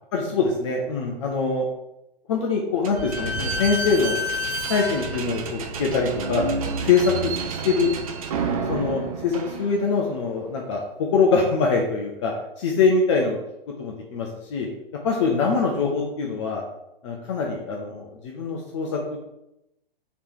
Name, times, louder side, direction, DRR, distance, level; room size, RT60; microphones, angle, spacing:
voice 1, 0.1-1.6 2.3-6.4 6.8-7.9 8.7-13.4 13.8-14.7 15.0-16.6 17.0-19.2, left 4 dB, 30° left, 0 dB, 0.6 m, -24 dB
Slam / Squeak, 2.8-10.1, right 2 dB, 40° right, 0.6 m, -29 dB
3.4 x 3.1 x 4.4 m, 0.86 s
figure-of-eight pair, 120°, 29 cm